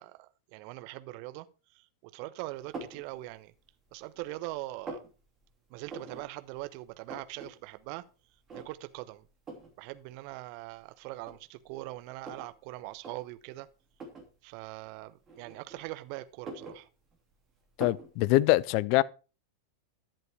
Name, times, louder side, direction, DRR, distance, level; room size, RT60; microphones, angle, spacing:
voice 1, 0.0-1.5 1.7-3.5 3.9-5.0 5.7-8.0 8.5-9.3 9.8-13.7 14.4-16.9, right 18 dB, 45° right, 0.8 m, -42 dB
sound 1, 2.7-3.0 3.6-4.2 4.5-5.1 5.9-6.3 6.6-6.7 6.9-7.5 7.8-7.9 8.5-8.9 9.5-9.7 10.6-10.7 11.2-12.5 12.9-13.1 13.9-14.3 15.3-15.9 16.3-17.3 17.8-18.1, right 3 dB, 25° right, 2.8 m, -43 dB
voice 2, 17.8-19.0, left 18 dB, 45° left, 0.4 m, -24 dB
11.0 x 7.6 x 4.7 m
figure-of-eight pair, 90°, 0 cm